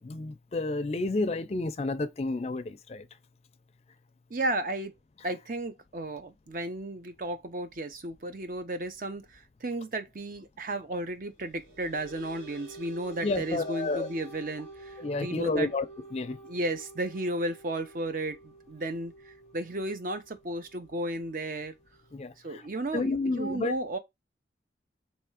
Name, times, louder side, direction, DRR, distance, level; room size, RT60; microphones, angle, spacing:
voice 1, 0.0-3.1 13.2-14.1 15.0-15.9 16.1-16.4 22.1-22.6 22.9-23.7, left 3 dB, 35° left, 0.4 m, -30 dB
voice 2, 4.3-4.9 5.2-15.7 16.4-21.7 22.4-24.0, right 1 dB, 50° right, 0.7 m, -34 dB
sound 1, 11.4-22.3, right 2 dB, 85° right, 2.5 m, -49 dB
3.4 x 3.2 x 4.8 m
head